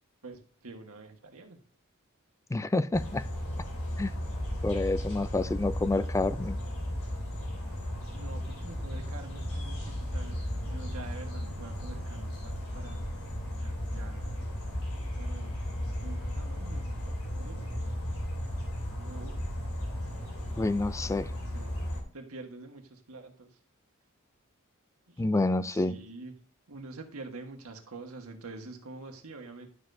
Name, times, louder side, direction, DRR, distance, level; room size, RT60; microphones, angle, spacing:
voice 1, 0.2-1.6 6.1-6.3 8.1-13.1 13.5-14.4 15.1-15.5 16.0-16.9 17.3-17.9 18.9-19.4 21.5-21.7 22.1-23.6 25.1-25.2 25.7-26.3 26.7-29.7, right 3 dB, 85° right, 1.5 m, -46 dB
voice 2, 2.5-3.3 4.0-4.1 4.6-6.6 20.6-21.3 25.2-26.0, left 2 dB, 15° left, 0.3 m, -28 dB
sound 1, 2.9-22.0, equal, 70° left, 3.3 m, -35 dB
11.5 x 6.7 x 2.7 m
head